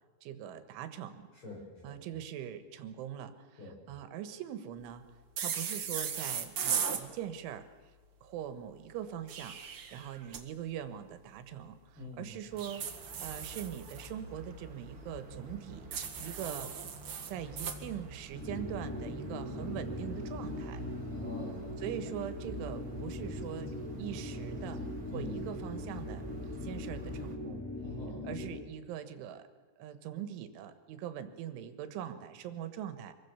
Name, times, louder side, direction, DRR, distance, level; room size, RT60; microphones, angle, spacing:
voice 1, 0.2-1.3 1.8-5.0 5.4-7.7 8.2-12.9 13.2-16.7 17.3-20.8 21.8-26.3 26.5-27.6 28.2-29.5 29.8-33.1, right 10 dB, 90° right, 10 dB, 3.7 m, -42 dB
voice 2, 1.4-2.0 3.6-3.8 11.9-12.4 21.1-21.8 25.1-25.4 27.8-28.3, left 2 dB, 25° left, -1 dB, 7.1 m, -45 dB
sound 1, 5.4-7.0 9.1-10.4 12.6-14.1 15.9-17.8, right 7 dB, 60° right, 1.4 m, -37 dB
sound 2, 12.5-27.4, right 1 dB, 35° right, 2.3 m, -48 dB
sound 3, 18.3-28.7, left 1 dB, 5° left, 2.7 m, -40 dB
25.5 x 23.0 x 6.9 m, 1.3 s
omnidirectional pair, 5.4 m